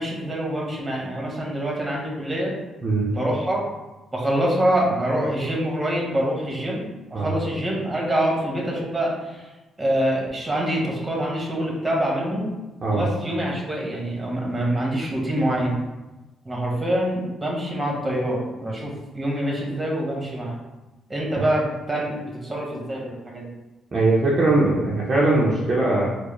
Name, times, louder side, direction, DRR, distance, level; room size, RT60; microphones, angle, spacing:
voice 1, 0.0-2.5 3.1-3.6 4.1-9.4 9.8-12.5 12.9-15.8 16.4-20.6 21.1-23.5, right 1 dB, 20° right, -2 dB, 1.1 m, -25 dB
voice 2, 12.8-13.1 21.4-21.5 23.9-26.1, right 2 dB, 35° right, -5 dB, 0.6 m, -20 dB
4.5 x 2.0 x 3.1 m, 1.1 s
cardioid pair, 90°, 0 cm